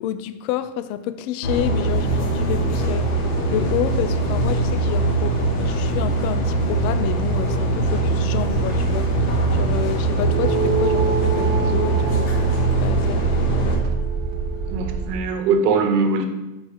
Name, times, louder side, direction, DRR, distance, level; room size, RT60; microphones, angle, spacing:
voice 1, 0.0-3.1 3.5-9.1 9.5-12.4 12.8-13.3, left 11 dB, 70° left, 0.6 m, -29 dB
sound 1, 1.4-13.7, right 2 dB, 55° left, 2.8 m, -21 dB
sound 2, 8.4-15.2, right 4 dB, 20° right, 0.5 m, -29 dB
sound 3, 10.2-15.0, right 6 dB, 40° right, 1.1 m, -28 dB
voice 2, 14.7-16.2, right 4 dB, 85° right, 1.3 m, -21 dB
10.5 x 4.8 x 3.8 m
supercardioid pair, 160°, 46 cm